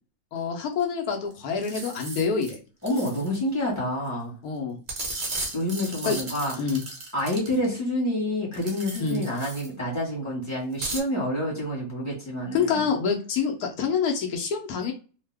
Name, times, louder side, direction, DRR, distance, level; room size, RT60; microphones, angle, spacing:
voice 1, 0.3-2.6 4.4-4.8 6.0-6.2 6.6-6.8 9.0-9.2 12.5-14.9, left 6 dB, 75° left, 2 dB, 1.0 m, -26 dB
sound 1, 1.3-1.4 1.6-2.6 2.9-3.4 4.9-7.7 8.5-9.7 10.7-11.0, right 2 dB, 40° right, 0.7 m, -35 dB
voice 2, 2.8-4.3 5.5-6.7 7.1-12.9, left 1 dB, 10° right, -5 dB, 1.0 m, -28 dB
2.7 x 2.1 x 3.3 m, 0.36 s
omnidirectional pair, 1.7 m